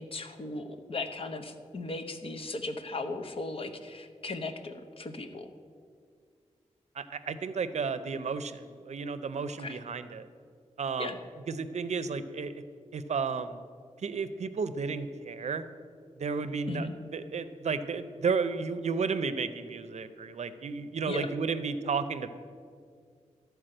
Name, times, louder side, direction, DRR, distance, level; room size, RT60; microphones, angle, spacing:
voice 1, 0.0-5.5 9.6-9.8 11.0-11.2 16.7-16.9 21.1-21.3, left 2 dB, 50° left, 6 dB, 0.8 m, -37 dB
voice 2, 6.9-10.3 10.8-11.2 11.5-12.6 12.9-13.6 14.0-15.6 16.2-16.9 17.1-22.3, right 5 dB, 65° right, 12 dB, 0.6 m, -33 dB
12.5 x 4.7 x 7.7 m, 2.1 s
wide cardioid pair, 135°, 12 cm